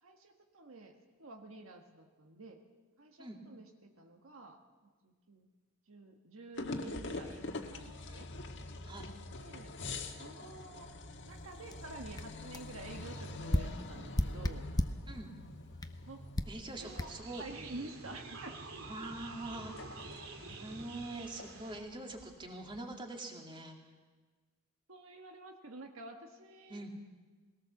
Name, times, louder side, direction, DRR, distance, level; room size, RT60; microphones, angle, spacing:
voice 1, 0.0-2.6 3.0-4.6 5.0-5.5 5.9-8.3 9.4-9.7 10.2-10.9 11.3-14.7 16.1-16.3 16.7-17.1 17.4-18.5 24.9-26.9, right 2 dB, 70° right, 3 dB, 1.5 m, -49 dB
sound 1, 6.6-22.9, left 2 dB, 60° left, 1.6 m, -46 dB
sound 2, 11.7-11.8 12.2-12.3 12.5-12.7 13.5-15.1 15.8-16.0 16.4-16.6 17.0-17.1, left 1 dB, 20° left, 0.7 m, -33 dB
voice 2, 16.5-17.4 18.8-20.0 20.4-23.8 26.7-26.9, right 2 dB, 25° right, 2 dB, 2.3 m, -44 dB
sound 3, 16.8-21.8, right 3 dB, 90° right, 2.7 m, -48 dB
20.5 x 18.0 x 7.1 m, 1.4 s
head